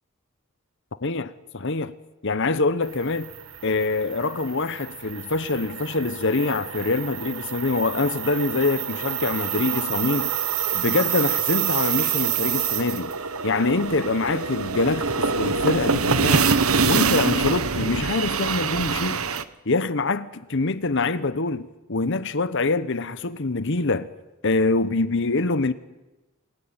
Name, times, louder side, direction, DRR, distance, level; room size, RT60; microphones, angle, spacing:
voice 1, 1.0-1.9 2.2-3.3 3.6-10.3 10.7-13.1 13.4-16.5 16.9-19.2 19.7-24.1 24.4-25.7, left 3 dB, 60° left, 1.1 m, -25 dB
sound 1, 3.0-19.4, right 6 dB, 85° right, 1.3 m, -26 dB
sound 2, 9.2-10.9 11.8-12.5 13.0-13.6 14.1-14.6 14.9-15.7 17.1-17.7 19.4-19.6, right 3 dB, 55° right, 4.7 m, -50 dB
29.0 x 21.5 x 8.9 m
head